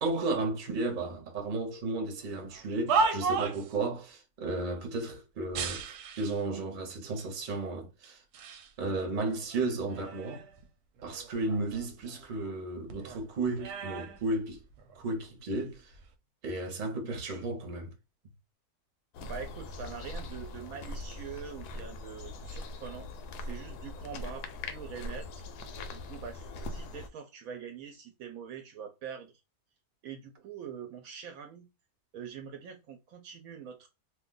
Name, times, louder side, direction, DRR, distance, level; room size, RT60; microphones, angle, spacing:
voice 1, 0.0-8.2 8.8-10.4 11.0-14.6 14.9-15.9 16.4-17.9, right 2 dB, 40° right, 0.8 m, -34 dB
sound 1, 2.5-3.8 5.5-6.4 7.2-7.3 8.0-8.7 9.1-10.6 11.0-12.6 12.9-15.0 15.8-16.1, right 4 dB, 90° right, 1.1 m, -34 dB
sound 2, 19.1-27.1, left 2 dB, 85° left, 1.1 m, -41 dB
voice 2, 19.2-25.3 25.5-29.3 30.0-31.7 32.1-33.9, right 7 dB, 70° right, 0.9 m, -44 dB
2.6 x 2.2 x 3.7 m
omnidirectional pair, 1.6 m